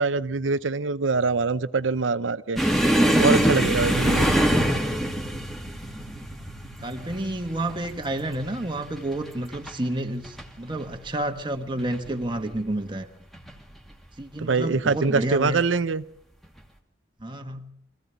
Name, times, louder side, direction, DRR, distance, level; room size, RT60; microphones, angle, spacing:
voice 1, 0.0-2.6 2.9-4.4 14.4-16.0, right 4 dB, 80° right, 0.7 m, -24 dB
sound 1, 2.6-9.8 10.1-10.5 10.8-11.0 11.8-12.4 13.3-13.5 14.9-15.1, equal, ahead, 2.3 m, -24 dB
voice 2, 6.8-13.1 14.2-15.7 17.2-17.7, right 1 dB, 25° right, 1.4 m, -30 dB
24.5 x 15.5 x 8.2 m
head